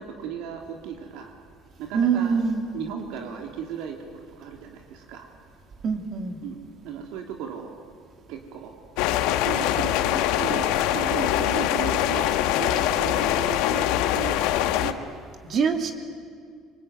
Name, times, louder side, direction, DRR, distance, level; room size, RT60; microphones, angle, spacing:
voice 1, 0.0-1.3 1.8-2.4 2.7-5.3 6.4-7.8 8.3-8.8 9.4-15.0, right 8 dB, 75° right, 3 dB, 2.4 m, -36 dB
voice 2, 1.9-2.7 5.8-6.4 15.5-15.9, right 6 dB, 40° right, 6 dB, 2.5 m, -23 dB
sound 1, 9.0-14.9, left 12 dB, 85° left, 1.3 m, -23 dB
26.0 x 24.5 x 9.3 m, 2.2 s
cardioid pair, 155°, 0 cm